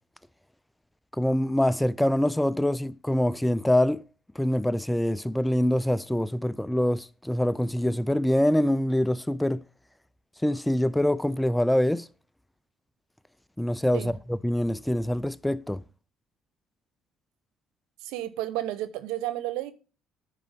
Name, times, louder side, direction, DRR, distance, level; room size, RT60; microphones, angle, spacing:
voice 1, 1.2-4.1 4.4-9.6 10.4-12.1 13.6-15.8, left 1 dB, 5° left, 0.3 m, -25 dB
voice 2, 18.0-19.7, right 14 dB, 75° right, 0.9 m, -32 dB
9.8 x 5.1 x 5.1 m
hypercardioid pair, 70°, 0 cm